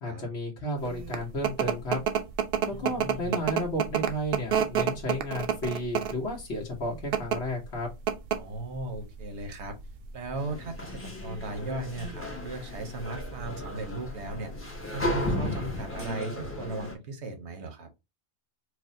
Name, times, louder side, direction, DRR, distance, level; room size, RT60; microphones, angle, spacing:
voice 1, 0.0-2.0 2.6-7.9, equal, 80° left, -2 dB, 1.3 m, -32 dB
sound 1, 0.8-16.1, right 8 dB, 60° right, 0.7 m, -31 dB
voice 2, 2.7-3.4 8.4-9.8 10.1-14.5 14.9-17.9, right 2 dB, 80° right, 6 dB, 1.2 m, -37 dB
sound 2, 10.4-16.9, left 1 dB, 15° left, 0.6 m, -35 dB
4.7 x 2.1 x 2.6 m, 0.24 s
omnidirectional pair, 1.1 m